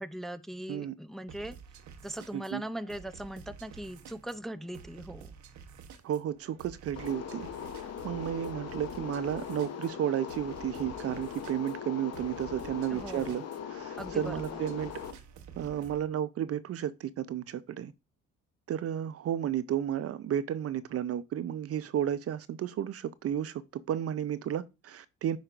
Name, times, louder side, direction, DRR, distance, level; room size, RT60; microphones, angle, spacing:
voice 1, 0.0-1.6 2.0-5.4 12.9-13.4 14.0-14.6, right 1 dB, ahead, 0.4 m, -40 dB
sound 1, 1.3-16.1, right 6 dB, 70° right, 0.9 m, -51 dB
voice 2, 6.0-7.5 7.8-14.9 15.6-17.9 18.7-25.4, right 10 dB, 50° right, 0.5 m, -33 dB
Wind Echo, 7.0-15.1, left 8 dB, 55° left, 0.9 m, -40 dB
8.8 x 5.2 x 2.5 m
cardioid pair, 90°, 30 cm